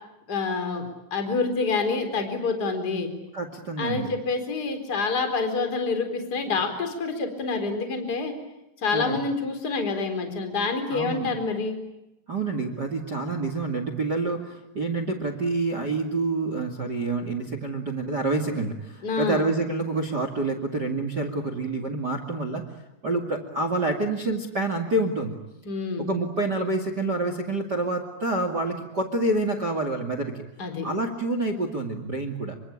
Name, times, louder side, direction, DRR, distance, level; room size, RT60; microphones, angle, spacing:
voice 1, 0.3-3.1 3.8-8.3 8.8-11.8 19.0-19.4 25.7-26.1 30.6-30.9, left 4 dB, 20° left, 7 dB, 3.9 m, -27 dB
voice 2, 3.3-4.1 8.9-9.2 10.9-11.3 12.3-22.6 23.0-25.4 26.0-30.4 30.8-32.6, right 2 dB, 40° right, 8 dB, 1.5 m, -27 dB
27.0 x 25.0 x 8.7 m, 0.92 s
omnidirectional pair, 5.7 m